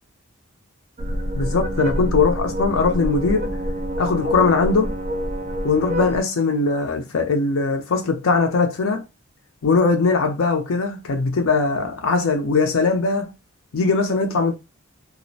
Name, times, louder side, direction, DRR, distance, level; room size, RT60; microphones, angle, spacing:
sound 1, 1.0-6.2, equal, 30° right, 0.4 m, -26 dB
voice 1, 1.3-3.6 4.0-4.9 5.6-9.0 9.6-13.3 13.7-14.5, left 4 dB, 70° left, 0.5 m, -20 dB
2.3 x 2.0 x 2.6 m
head